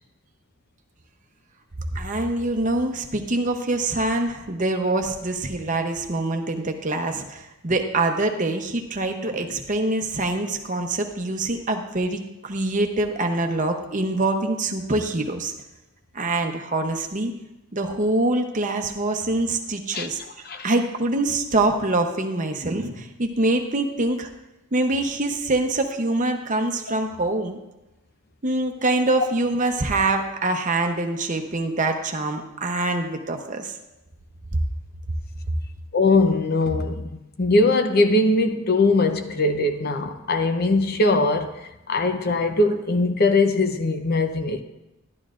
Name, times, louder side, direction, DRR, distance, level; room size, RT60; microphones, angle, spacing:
voice 1, 1.9-15.5 16.1-17.3 17.7-24.3 24.7-27.6 28.4-33.7 34.5-34.6, right 2 dB, 35° right, 0.8 m, -24 dB
voice 2, 35.9-37.1 37.4-41.6 41.9-44.6, left 2 dB, 45° left, 0.7 m, -21 dB
11.5 x 11.5 x 2.5 m
head